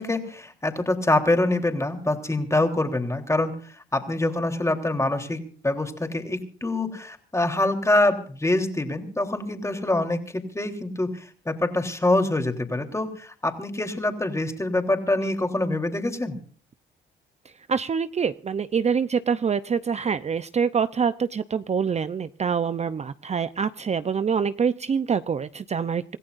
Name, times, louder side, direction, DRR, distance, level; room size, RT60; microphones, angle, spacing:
voice 1, 0.0-16.4, left 2 dB, 15° left, 6 dB, 3.4 m, -25 dB
voice 2, 17.7-26.2, right 6 dB, 35° right, 13 dB, 0.7 m, -25 dB
27.0 x 15.5 x 2.6 m, 0.43 s
cardioid pair, 90°, 20 cm